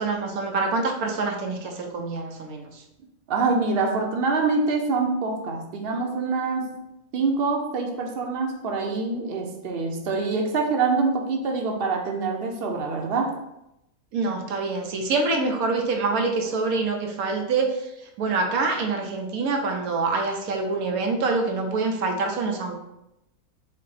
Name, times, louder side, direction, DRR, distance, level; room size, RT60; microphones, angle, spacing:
voice 1, 0.0-2.8 14.1-17.9 18.2-22.7, right 3 dB, 90° right, 3 dB, 1.2 m, -26 dB
voice 2, 3.3-6.8 7.1-13.4, right 4 dB, 55° right, 2 dB, 0.7 m, -25 dB
5.5 x 2.1 x 4.0 m, 0.87 s
omnidirectional pair, 1.5 m